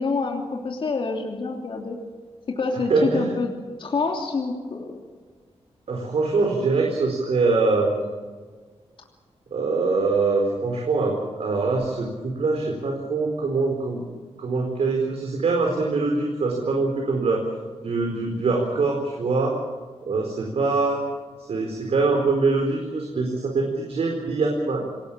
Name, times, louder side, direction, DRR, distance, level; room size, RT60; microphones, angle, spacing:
voice 1, 0.0-2.0 2.6-3.5 3.8-5.0, left 4 dB, 50° left, 1 dB, 2.9 m, -27 dB
voice 2, 2.9-3.3 5.9-7.9 9.5-14.0 14.4-17.5 17.8-19.6 20.1-21.0 21.5-24.9, right 3 dB, 70° right, 1 dB, 4.4 m, -23 dB
27.5 x 19.0 x 7.6 m, 1.5 s
wide cardioid pair, 155°, 11 cm